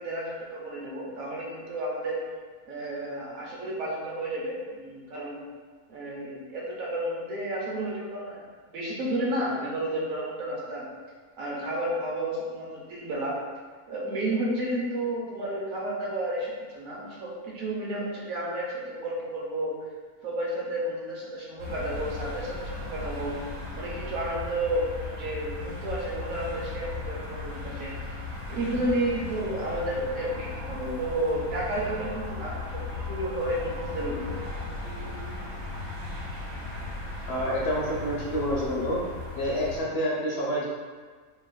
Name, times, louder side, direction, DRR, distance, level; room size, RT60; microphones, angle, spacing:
voice 1, 0.0-2.2 2.7-5.4 5.9-8.4 8.7-10.8 11.4-13.4 13.9-19.8 20.2-23.4 23.7-27.9 28.5-34.3, right 1 dB, 75° right, -4 dB, 1.1 m, -31 dB
sound 1, 21.6-39.8, left 3 dB, 55° right, 1.3 m, -37 dB
voice 2, 37.3-39.0 39.4-40.7, equal, 60° left, -5 dB, 0.7 m, -28 dB
3.9 x 2.9 x 2.2 m, 1.5 s
omnidirectional pair, 1.5 m